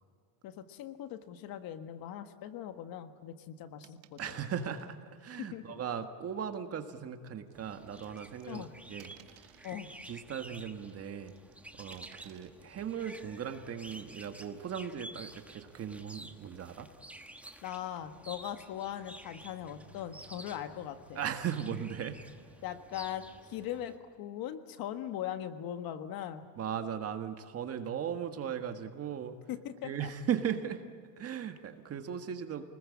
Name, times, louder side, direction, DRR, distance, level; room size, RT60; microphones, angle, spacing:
voice 1, 0.4-4.2 5.4-5.8 8.5-8.7 9.6-9.9 17.6-21.2 22.6-26.5 29.5-30.1, left 11 dB, 45° left, 9 dB, 1.6 m, -40 dB
sound 1, 3.8-4.9 5.9-6.1 7.5-8.6 9.0-9.8 10.9-11.5 11.9-12.5, right 15 dB, 60° right, 1.9 m, -59 dB
voice 2, 4.2-9.5 10.1-11.3 11.7-16.9 21.1-22.2 26.6-29.4 29.8-30.8 31.2-32.6, right 8 dB, 30° right, 7 dB, 1.6 m, -37 dB
sound 2, 7.5-24.0, right 1 dB, 5° right, 1.3 m, -51 dB
28.5 x 20.5 x 8.6 m, 2.1 s
supercardioid pair, 140°, 49 cm